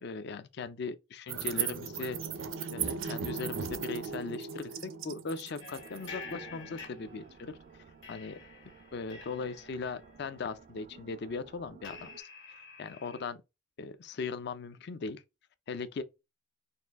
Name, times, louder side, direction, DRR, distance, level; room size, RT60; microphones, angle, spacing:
voice 1, 0.0-2.2 2.7-7.6 8.1-8.4 8.9-12.1 12.8-13.4 13.8-15.2 15.7-16.0, left 4 dB, 55° left, 0.4 m, -39 dB
sound 1, 1.3-7.8, right 7 dB, 85° right, 0.6 m, -37 dB
sound 2, 5.6-7.6 8.0-13.3, left 5 dB, 75° left, 1.7 m, -49 dB
sound 3, 5.7-12.2, right 5 dB, 40° right, 0.3 m, -54 dB
4.2 x 2.5 x 3.4 m
head